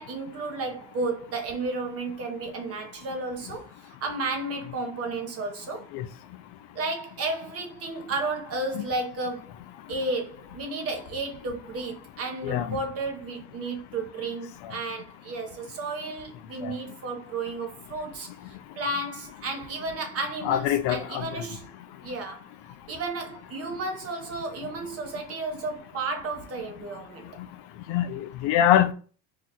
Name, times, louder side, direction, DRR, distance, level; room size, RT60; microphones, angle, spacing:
voice 1, 0.0-5.9 6.7-9.5 9.9-18.3 18.8-21.7 22.0-22.5 22.9-27.3, right 3 dB, 30° right, 0.6 m, -33 dB
voice 2, 12.4-12.8 16.6-16.7 20.4-21.3 27.9-28.9, left 11 dB, 60° left, 0.5 m, -24 dB
2.8 x 2.3 x 3.8 m
cardioid pair, 155°, 46 cm